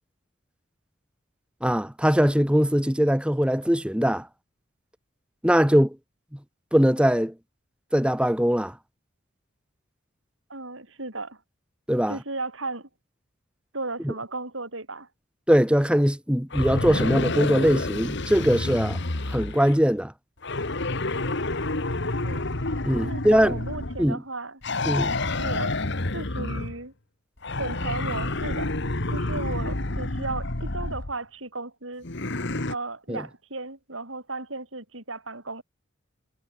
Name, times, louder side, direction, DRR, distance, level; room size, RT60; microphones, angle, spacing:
voice 1, 1.6-4.3 5.4-6.0 6.7-7.3 7.9-8.7 11.9-12.2 14.0-14.1 15.5-19.0 19.3-20.1 22.8-23.6 24.0-24.2 24.9-25.2 33.1-33.2, equal, 5° right, 2.4 m, -21 dB
voice 2, 10.5-11.4 12.1-12.9 13.7-15.1 22.2-22.4 22.9-24.6 25.3-25.8 26.1-26.9 27.6-28.7 29.1-32.1 32.7-35.6, right 3 dB, 70° right, 6.4 m, -35 dB
sound 1, 16.5-19.8 20.4-24.1 24.6-26.8 27.4-31.1 32.0-32.7, left 2 dB, 60° left, 2.0 m, -29 dB
head